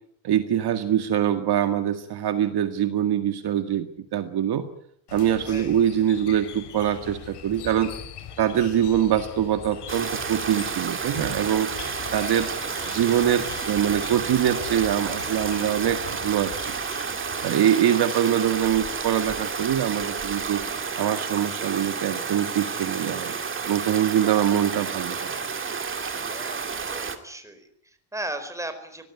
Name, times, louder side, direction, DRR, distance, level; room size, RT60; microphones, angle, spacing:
voice 1, 0.2-4.7 5.1-7.9 8.4-11.7 12.1-12.5 12.9-16.7 17.4-20.6 21.0-23.3 23.6-25.2, right 10 dB, 50° right, 8 dB, 2.0 m, -24 dB
sound 1, 5.1-17.5, left 8 dB, 55° left, 4.9 m, -41 dB
Stream, 9.9-27.2, right 5 dB, 25° right, 2.6 m, -31 dB
voice 2, 12.1-12.5 12.8-13.4 24.2-24.5 26.2-29.1, right 1 dB, 5° right, 8 dB, 4.7 m, -38 dB
24.0 x 19.0 x 9.6 m, 0.70 s
cardioid pair, 140°, 48 cm